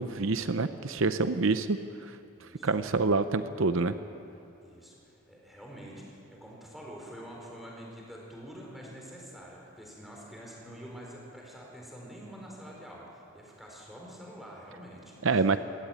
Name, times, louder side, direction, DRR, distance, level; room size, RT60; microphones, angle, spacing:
voice 1, 0.0-1.8 2.6-3.9 15.2-15.6, right 3 dB, 70° right, 10 dB, 0.7 m, -26 dB
voice 2, 2.3-2.7 4.6-15.4, equal, ahead, -3 dB, 4.8 m, -46 dB
22.0 x 17.0 x 9.1 m, 2.7 s
head